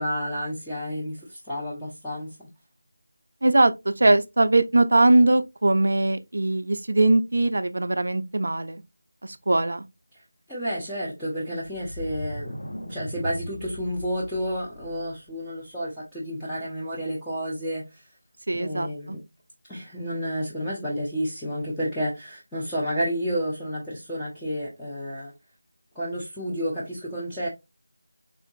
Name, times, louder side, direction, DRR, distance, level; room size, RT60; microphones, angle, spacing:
voice 1, 0.0-2.5 10.5-12.5 12.9-18.0 18.5-19.2 19.7-25.3 25.9-27.5, equal, 5° left, 0.7 m, -30 dB
voice 2, 3.4-8.8 9.2-9.8 18.5-19.2, right 2 dB, 60° right, 0.5 m, -21 dB
sound 1, 11.5-15.3, equal, 60° left, 1.3 m, -38 dB
3.6 x 2.5 x 2.6 m
figure-of-eight pair, 170°, 0 cm